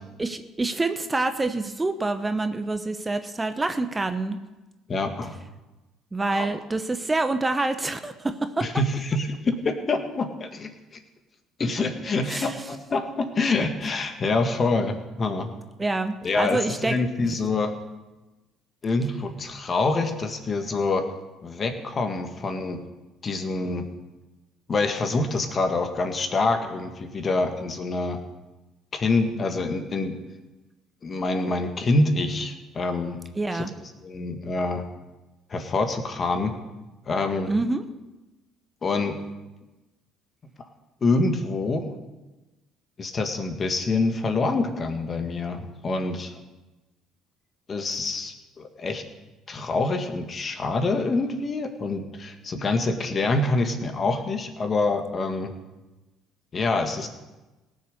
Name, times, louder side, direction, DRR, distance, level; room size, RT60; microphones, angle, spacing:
voice 1, 0.2-4.4 6.1-8.7 12.3-12.6 15.8-17.0 33.4-33.7 37.5-37.8, right 2 dB, 20° right, 9 dB, 0.9 m, -26 dB
voice 2, 4.9-5.4 6.3-6.5 8.6-10.7 11.6-15.5 16.2-17.7 18.8-21.0 21.4-22.8 23.2-23.8 24.7-28.2 28.9-30.2 31.0-33.2 33.5-33.6 34.0-34.8 35.5-36.5 37.1-37.5 38.8-39.2 41.0-41.9 43.0-46.4 47.7-49.0 49.5-55.5 56.5-57.1, left 3 dB, 40° left, 6 dB, 1.9 m, -26 dB
17.5 x 6.6 x 6.8 m, 1.1 s
hypercardioid pair, 60°, 0 cm